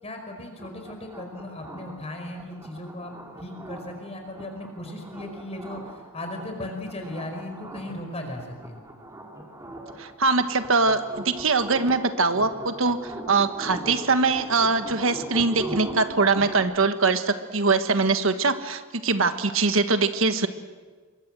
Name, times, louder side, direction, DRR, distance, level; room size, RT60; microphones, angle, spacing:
voice 1, 0.0-3.1 3.4-8.8, left 1 dB, 30° left, 4 dB, 5.0 m, -37 dB
sound 1, 0.6-16.6, right 1 dB, 15° right, 3.7 m, -40 dB
voice 2, 10.0-20.5, right 4 dB, 70° right, 9 dB, 1.5 m, -22 dB
27.5 x 23.0 x 7.6 m, 1.4 s
head